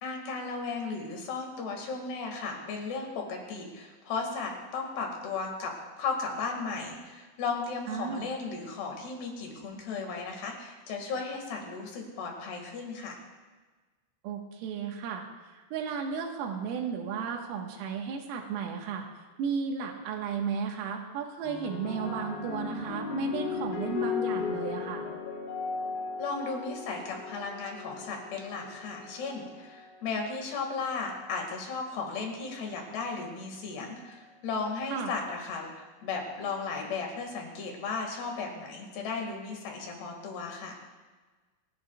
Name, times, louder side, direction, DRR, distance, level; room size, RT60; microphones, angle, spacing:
voice 1, 0.0-13.2 26.2-40.7, left 4 dB, 60° left, 1 dB, 3.8 m, -35 dB
voice 2, 7.9-8.2 14.2-19.0 19.4-25.1 34.9-35.1, right 6 dB, 80° right, 1 dB, 4.1 m, -34 dB
sound 1, 21.4-30.0 30.9-31.3, left 6 dB, 80° left, 4.1 m, -36 dB
28.0 x 12.0 x 2.4 m, 1.3 s
omnidirectional pair, 6.0 m